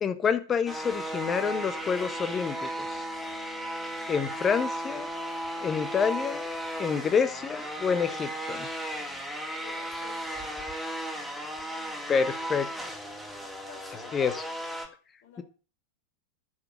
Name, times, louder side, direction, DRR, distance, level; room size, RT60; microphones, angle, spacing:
voice 1, 0.0-3.0 4.1-5.1 5.6-6.4 6.8-8.7 12.1-13.0 14.1-14.4, left 6 dB, 20° left, 1.3 m, -28 dB
sound 1, 0.7-14.9, right 1 dB, ahead, 2.8 m, -35 dB
voice 2, 9.6-10.7 13.4-14.4 15.2-15.4, left 7 dB, 55° left, 4.9 m, -52 dB
10.0 x 7.2 x 7.9 m
figure-of-eight pair, 90°, 0 cm